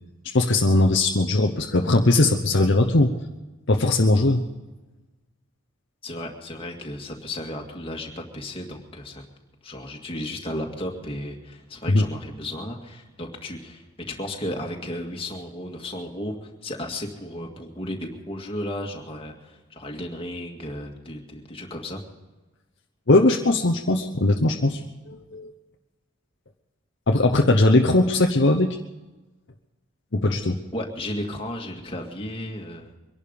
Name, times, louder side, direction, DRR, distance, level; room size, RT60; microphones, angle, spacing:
voice 1, 0.3-3.1 3.7-4.4 11.9-12.0 23.1-25.5 27.1-28.8 30.1-30.6, left 2 dB, 55° left, 3 dB, 0.9 m, -19 dB
voice 2, 6.0-9.2 9.6-22.0 30.7-32.9, left 1 dB, 25° left, 1 dB, 2.0 m, -34 dB
23.5 x 11.5 x 5.3 m, 1.1 s
head